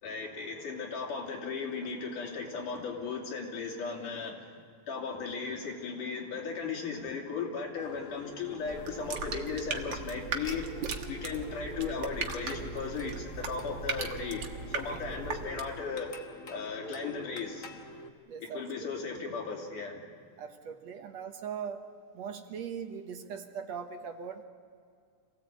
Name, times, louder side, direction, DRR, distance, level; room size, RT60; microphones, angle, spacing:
voice 1, 0.0-4.5 4.9-10.7 11.1-16.2 16.5-17.7 18.4-20.0, left 5 dB, 90° left, 0 dB, 4.5 m, -36 dB
sound 1, 7.8-18.1, left 2 dB, 40° left, 1.1 m, -47 dB
sound 2, 8.6-15.9, right 5 dB, 50° right, 1.7 m, -38 dB
voice 2, 18.3-18.6 20.4-21.8 22.1-24.4, right 7 dB, 65° right, 5 dB, 2.3 m, -40 dB
26.5 x 17.5 x 8.3 m, 2.2 s
omnidirectional pair, 3.6 m